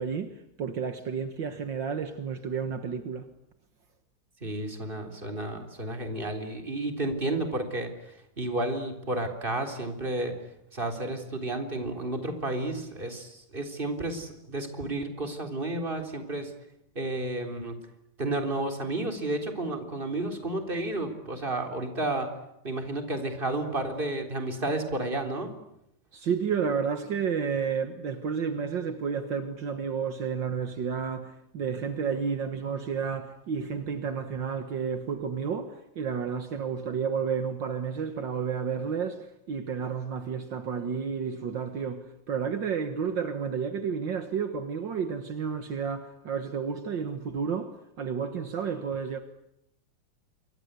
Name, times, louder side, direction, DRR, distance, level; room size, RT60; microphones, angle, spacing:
voice 1, 0.0-3.3 26.1-49.2, right 6 dB, 70° right, 2.1 m, -31 dB
voice 2, 4.4-10.4 10.7-16.5 17.0-17.8 18.2-22.3 22.6-25.5, right 2 dB, 25° right, 4.0 m, -32 dB
28.0 x 24.0 x 8.2 m
omnidirectional pair, 2.1 m